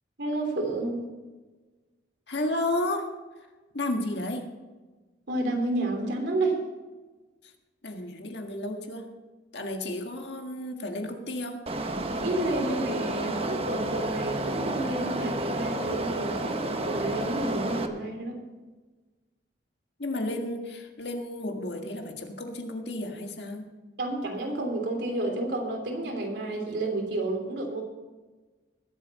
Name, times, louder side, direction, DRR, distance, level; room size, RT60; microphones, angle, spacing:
voice 1, 0.2-1.0 5.3-6.6 12.1-18.4 24.0-27.8, right 2 dB, 70° right, 2 dB, 3.3 m, -30 dB
voice 2, 2.3-3.2 3.7-4.5 7.8-9.1 9.5-11.7 20.0-23.8, left 1 dB, 70° left, 3 dB, 1.7 m, -32 dB
sound 1, 11.7-17.9, right 2 dB, 35° right, 1.0 m, -31 dB
21.0 x 8.3 x 4.2 m, 1.3 s
head